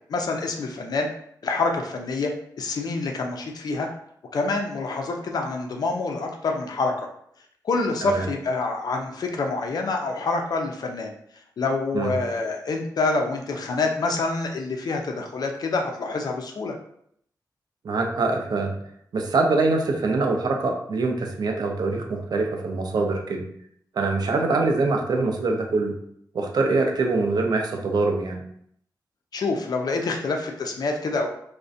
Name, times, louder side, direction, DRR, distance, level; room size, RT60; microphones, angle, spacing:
voice 1, 0.1-1.1 1.4-2.3 2.6-3.9 4.3-7.1 7.6-11.1 11.6-16.8 29.3-31.3, left 3 dB, 60° left, 3 dB, 0.4 m, -26 dB
voice 2, 17.8-18.7 19.1-23.4 23.9-25.9 26.3-28.4, right 3 dB, 60° right, 2 dB, 0.4 m, -24 dB
2.4 x 2.0 x 2.5 m, 0.69 s
wide cardioid pair, 125°, 8 cm